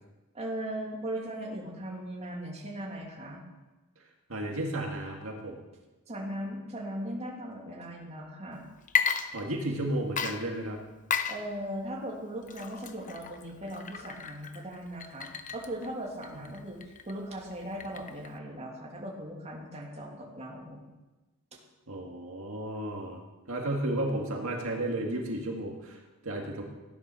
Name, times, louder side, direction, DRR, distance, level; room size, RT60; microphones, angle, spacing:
voice 1, 0.3-3.4 6.1-8.7 11.3-16.8 17.1-20.8 21.5-21.6, right 1 dB, 30° right, -1 dB, 2.8 m, -38 dB
voice 2, 4.3-5.6 9.3-10.8 21.9-23.2 23.5-26.6, right 1 dB, 75° right, 0 dB, 2.0 m, -33 dB
Water / Liquid, 8.8-9.8 10.2-18.4, left 6 dB, 40° left, 0.9 m, -35 dB
15.5 x 10.5 x 6.3 m, 1.1 s
head